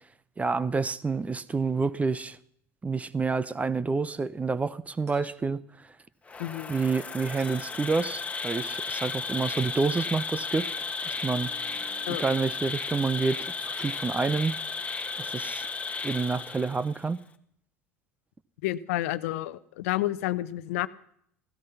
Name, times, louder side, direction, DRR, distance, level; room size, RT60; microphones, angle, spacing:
voice 1, 0.4-2.4 2.8-5.6 6.7-10.7 11.0-11.5 12.1-14.6 15.2-15.7 16.0-17.2, right 4 dB, 20° right, 0.8 m, -28 dB
sound 1, 5.1-5.3 7.4-7.6 9.6-9.8 11.1-12.5 13.7-14.1, equal, 80° right, 4.7 m, -50 dB
Insect, 6.3-17.0, left 4 dB, 15° left, 1.6 m, -34 dB
voice 2, 18.6-20.9, left 15 dB, 65° left, 0.8 m, -30 dB
16.5 x 15.5 x 5.7 m
figure-of-eight pair, 70°, 8 cm